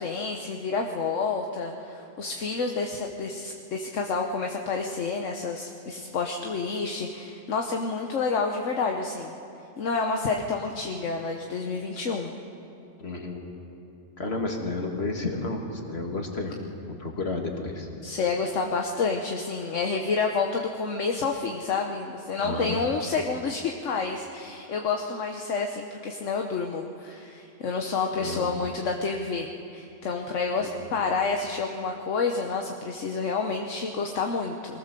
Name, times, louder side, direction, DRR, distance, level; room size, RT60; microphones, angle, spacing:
voice 1, 0.0-9.3 9.8-12.3 18.0-34.8, left 4 dB, 75° left, 3 dB, 1.4 m, -29 dB
voice 2, 13.0-13.4 14.2-16.5 17.0-17.9 22.4-22.8 28.2-28.5 30.6-30.7, left 3 dB, 55° left, 2 dB, 2.4 m, -31 dB
22.5 x 18.5 x 6.8 m, 2.8 s
omnidirectional pair, 1.3 m